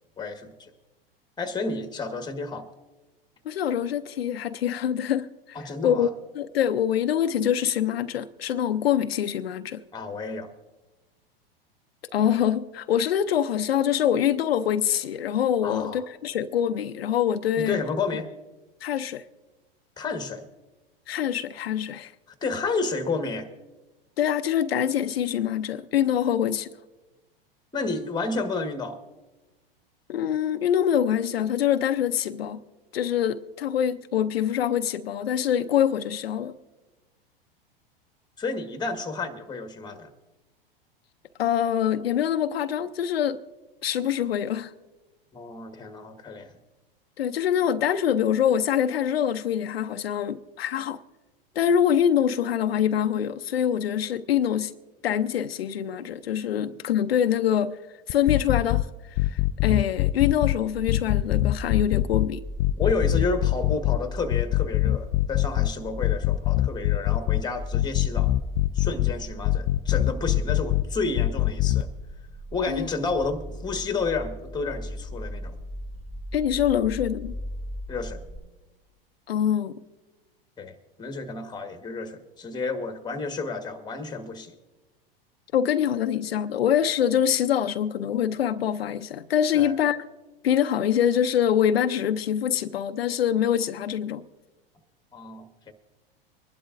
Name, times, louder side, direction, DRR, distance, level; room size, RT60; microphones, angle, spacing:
voice 1, 0.2-0.7 1.4-2.7 5.5-6.1 9.9-10.5 15.6-16.0 17.6-18.3 20.0-20.4 22.4-23.5 27.7-29.0 38.4-40.1 45.3-46.6 62.8-68.3 68.7-71.9 72.5-75.6 77.9-78.2 80.6-84.5 89.5-89.7 95.1-95.7, left 3 dB, 15° left, 1.4 m, -31 dB
voice 2, 3.4-5.6 5.8-6.1 6.3-9.8 12.1-17.8 18.8-19.2 21.1-22.1 24.2-26.7 30.1-32.6 32.9-36.5 41.4-43.4 43.8-44.7 47.2-51.0 51.6-54.7 55.0-57.8 58.1-62.4 72.7-72.9 76.3-77.3 79.3-79.8 85.5-90.0 90.4-94.2, left 9 dB, 80° left, 0.6 m, -24 dB
sound 1, 58.1-58.8 59.2-60.5 60.9-62.3 62.6-64.0 64.3-65.7 66.0-67.4 67.7-69.1 69.4-70.8 71.2-71.8, left 16 dB, 40° left, 0.4 m, -23 dB
sound 2, 60.7-78.4, equal, 25° right, 3.7 m, -37 dB
24.5 x 11.5 x 2.5 m
hypercardioid pair, 100°, 30 cm